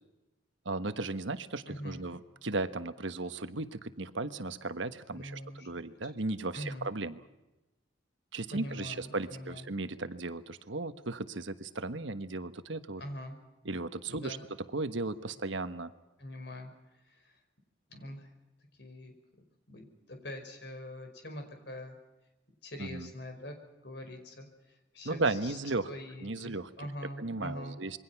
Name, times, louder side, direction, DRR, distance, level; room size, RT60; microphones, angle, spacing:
voice 1, 0.6-7.2 8.3-13.0 13.6-14.4 14.7-15.9 22.8-23.1 25.0-25.9 26.2-26.7 27.2-28.0, right 3 dB, 70° right, 10 dB, 1.3 m, -35 dB
voice 2, 1.7-2.0 5.2-5.7 6.0-6.1 6.5-6.9 8.5-9.7 13.0-13.4 14.1-14.4 16.2-16.7 17.1-17.3 17.9-18.3 18.8-19.1 19.7-21.9 22.6-23.5 23.8-24.5 24.9-25.6 25.8-27.8, left 1 dB, 55° left, 5 dB, 5.4 m, -43 dB
27.5 x 22.5 x 5.9 m, 1.0 s
head